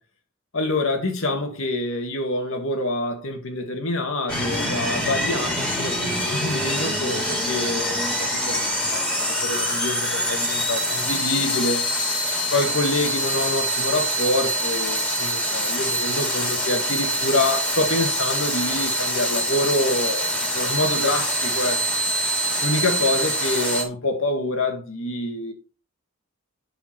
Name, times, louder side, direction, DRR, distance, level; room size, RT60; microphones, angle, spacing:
voice 1, 0.5-11.8 12.5-20.3 20.5-21.8 22.6-25.5, left 2 dB, 70° left, 2.2 m, -26 dB
sound 1, 4.3-23.8, equal, 5° left, 2.6 m, -25 dB
9.3 x 6.8 x 4.5 m
head